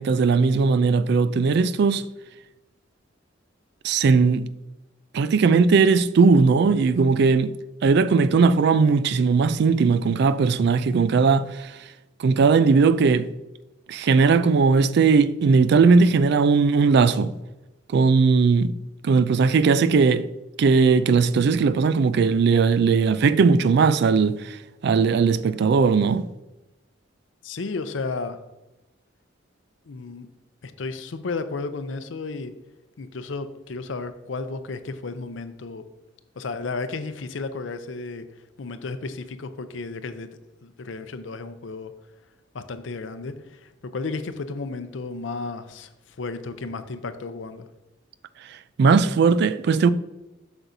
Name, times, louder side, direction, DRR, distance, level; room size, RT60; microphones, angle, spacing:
voice 1, 0.0-2.0 3.8-4.5 5.1-7.5 7.8-11.7 12.2-13.3 13.9-17.3 17.9-18.7 19.0-20.3 20.6-24.6 24.8-26.3 48.8-49.9, right 4 dB, 60° right, 0.3 m, -18 dB
voice 2, 27.4-28.4 29.9-30.3 30.6-32.5 33.0-35.8 36.4-38.3 38.6-40.3 40.6-41.9 42.5-43.6 43.9-45.9 46.2-47.7, left 3 dB, 80° left, 0.6 m, -33 dB
7.9 x 6.1 x 2.7 m
head